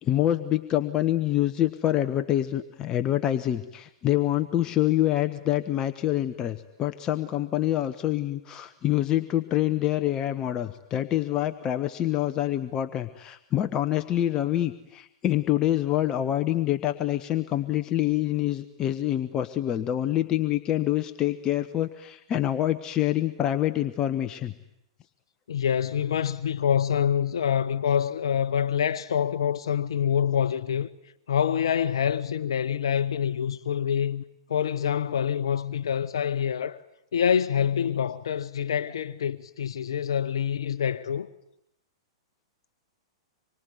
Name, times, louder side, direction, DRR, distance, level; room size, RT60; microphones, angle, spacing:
voice 1, 0.0-24.5, left 13 dB, 30° left, 1.2 m, -26 dB
voice 2, 25.5-30.9 31.3-34.2 34.5-36.8 37.1-41.3, left 8 dB, 70° left, 1.0 m, -26 dB
26.5 x 23.5 x 9.6 m
hypercardioid pair, 110°, 3 cm